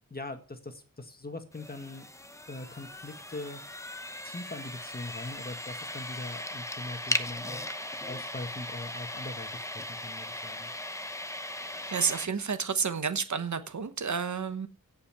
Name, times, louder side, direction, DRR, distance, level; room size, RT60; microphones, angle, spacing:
voice 1, 0.1-2.1 2.5-3.8 4.2-10.7, left 2 dB, 30° left, 1.7 m, -41 dB
sound 1, 1.5-12.3, left 1 dB, 10° left, 0.9 m, -38 dB
voice 2, 11.9-14.7, right 6 dB, 60° right, 1.1 m, -30 dB
16.5 x 5.7 x 5.8 m
wide cardioid pair, 115°, 32 cm